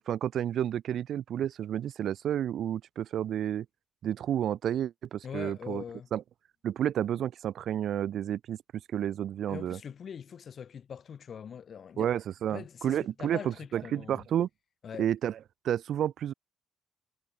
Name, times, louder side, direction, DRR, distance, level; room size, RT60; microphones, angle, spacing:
voice 1, 0.0-3.7 4.0-5.8 6.1-6.2 6.6-8.6 8.9-9.8 12.0-14.5 15.0-15.4 15.6-16.3, right 10 dB, 70° right, 0.5 m, -31 dB
voice 2, 5.2-6.1 9.5-12.1 12.5-14.2 14.8-15.1, left 7 dB, 55° left, 6.0 m, -42 dB
cardioid pair, 90°, 0 cm